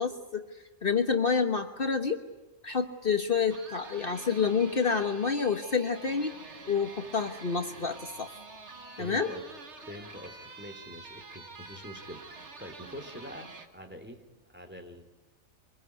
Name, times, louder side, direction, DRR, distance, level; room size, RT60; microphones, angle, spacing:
voice 1, 0.0-2.2 2.6-6.3 6.7-8.3 9.0-9.3, left 5 dB, 50° left, 6 dB, 1.4 m, -28 dB
sound 1, 3.5-13.7, right 4 dB, 70° right, 2.0 m, -47 dB
voice 2, 9.0-9.4 9.9-15.0, equal, 10° right, 4 dB, 2.9 m, -45 dB
24.5 x 22.5 x 9.5 m, 1.1 s
omnidirectional pair, 1.2 m